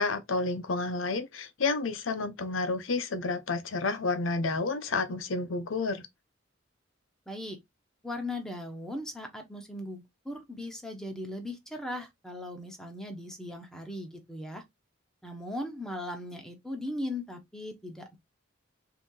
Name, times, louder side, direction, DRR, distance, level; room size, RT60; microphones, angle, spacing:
voice 1, 0.0-6.0, left 3 dB, 85° left, 0.7 m, -30 dB
voice 2, 7.3-7.6 8.0-14.6 15.2-18.2, left 1 dB, 5° left, 1.0 m, -38 dB
3.8 x 2.8 x 3.8 m
head